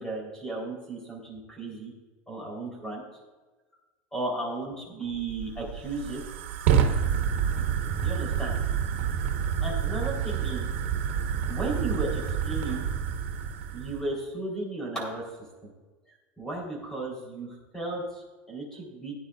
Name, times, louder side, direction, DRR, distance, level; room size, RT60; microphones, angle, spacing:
voice 1, 0.0-1.9 2.3-3.0 4.1-6.2 8.0-8.5 9.6-10.7 11.5-12.9 13.7-15.2 15.6-15.7 16.4-19.1, right 2 dB, 10° left, -1 dB, 3.9 m, -34 dB
Fire, 5.1-14.1, right 7 dB, 85° right, 1.3 m, -28 dB
17.0 x 9.9 x 2.5 m, 1.3 s
supercardioid pair, 150°, 6 cm